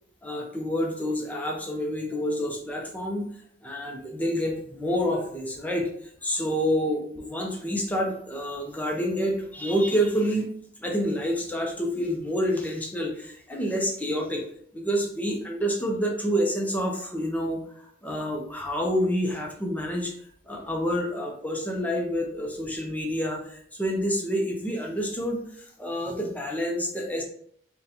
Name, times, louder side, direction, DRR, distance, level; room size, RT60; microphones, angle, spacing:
voice 1, 0.2-3.2 3.6-5.9 6.2-10.5 10.8-14.4 14.7-20.1 20.5-27.2, equal, 10° left, 1 dB, 0.4 m, -28 dB
3.9 x 2.1 x 2.7 m, 0.64 s
head